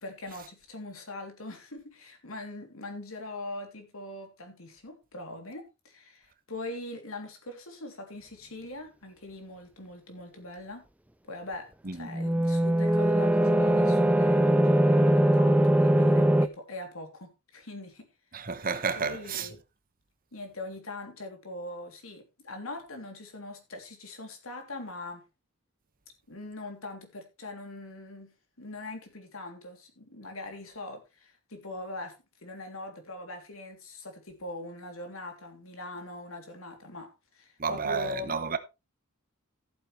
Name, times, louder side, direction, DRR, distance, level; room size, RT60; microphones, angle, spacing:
voice 1, 0.0-10.9 11.3-18.1 18.4-18.5 18.9-19.6 20.3-25.2 26.3-32.1 32.4-38.4, left 2 dB, 85° left, 3.2 m, -42 dB
sound 1, 12.1-16.5, right 1 dB, 5° right, 0.5 m, -21 dB
voice 2, 18.3-19.5 37.6-38.6, right 5 dB, 40° right, 1.1 m, -31 dB
14.5 x 8.0 x 3.3 m
head